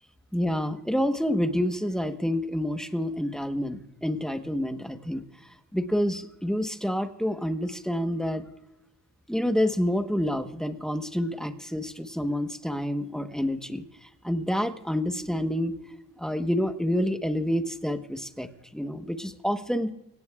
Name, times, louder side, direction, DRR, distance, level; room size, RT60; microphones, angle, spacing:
voice 1, 0.3-5.2 5.7-8.4 9.3-15.8 16.2-19.9, equal, ahead, 7 dB, 1.1 m, -28 dB
25.0 x 17.5 x 2.4 m, 0.91 s
cardioid pair, 100°, 38 cm